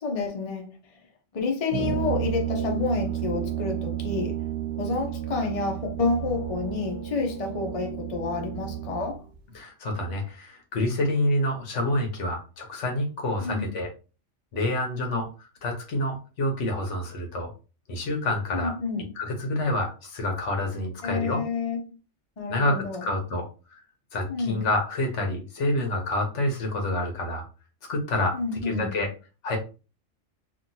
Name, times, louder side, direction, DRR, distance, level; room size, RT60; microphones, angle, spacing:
voice 1, 0.0-1.0 1.3-4.5 4.8-9.2 13.4-13.7 18.5-19.1 21.0-21.9 22.4-23.1 24.3-24.7 28.3-28.9, left 4 dB, 40° left, 0.5 m, -29 dB
Brass instrument, 1.7-9.2, right 11 dB, 75° right, 0.9 m, -31 dB
voice 2, 9.5-13.9 14.5-17.5 17.9-18.8 19.2-21.4 22.5-23.8 24.1-27.5 27.9-29.1 29.4-29.6, left 1 dB, 80° left, 1.2 m, -28 dB
3.0 x 2.5 x 2.6 m
omnidirectional pair, 1.2 m